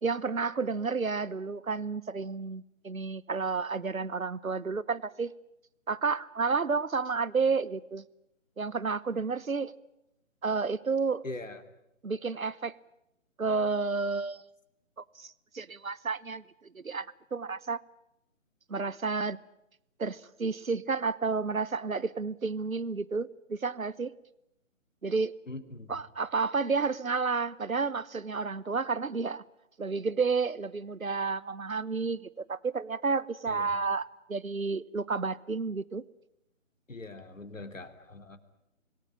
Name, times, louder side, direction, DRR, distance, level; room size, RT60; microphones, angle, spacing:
voice 1, 0.0-5.3 5.9-8.0 8.6-9.7 10.4-11.2 12.0-12.7 13.4-14.4 15.0-16.4 16.7-17.8 18.7-19.4 20.0-24.1 25.0-25.3 25.9-29.4 29.8-36.0, right 4 dB, 85° right, 19 dB, 1.0 m, -31 dB
voice 2, 11.2-11.6 25.5-26.0 33.5-33.7 36.9-38.4, left 2 dB, 70° left, 8 dB, 3.0 m, -42 dB
26.5 x 18.0 x 10.0 m, 0.84 s
figure-of-eight pair, 150°, 40 cm